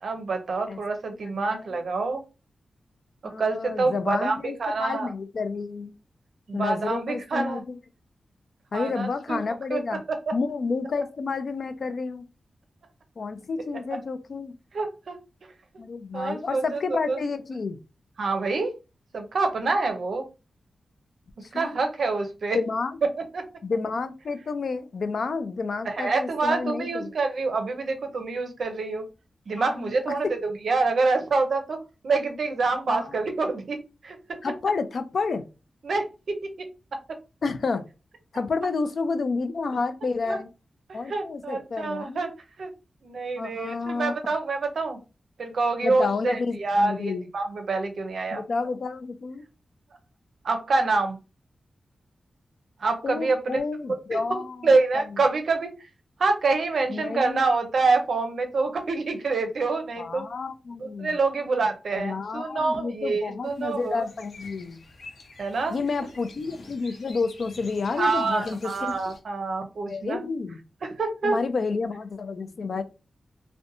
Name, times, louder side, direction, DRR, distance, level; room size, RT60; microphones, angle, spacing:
voice 1, 0.0-2.2 3.4-5.1 6.5-7.6 8.7-9.8 10.1-10.3 13.9-14.0 14.7-15.2 16.1-16.8 17.1-17.2 18.2-18.7 19.1-20.3 21.5-22.6 23.3-23.4 25.9-29.1 29.5-31.8 32.0-33.8 34.0-34.2 35.8-36.5 40.3-40.4 40.9-42.3 42.6-42.7 43.0-45.0 45.4-48.4 50.4-51.2 52.8-53.6 53.9-54.2 54.6-55.7 56.2-60.3 60.8-64.0 65.4-65.8 68.0-70.2 70.8-71.4, right 3 dB, 65° right, 0.6 m, -26 dB
voice 2, 1.2-1.7 3.2-5.9 6.5-7.8 8.7-10.0 10.3-12.2 13.2-14.6 15.8-17.8 21.4-21.8 22.5-23.0 23.6-27.1 29.6-29.9 30.2-30.3 32.9-33.2 34.4-35.4 37.4-37.8 38.3-40.5 40.9-42.3 43.4-44.1 45.8-47.3 48.3-49.4 53.0-54.7 54.9-55.0 56.9-57.4 60.0-61.2 62.0-64.8 65.7-69.1 69.9-70.6 71.2-72.8, left 4 dB, 60° left, 0.3 m, -30 dB
sound 1, 63.4-69.2, left 2 dB, 75° left, 0.8 m, -48 dB
2.6 x 2.1 x 2.6 m
wide cardioid pair, 145°, 0 cm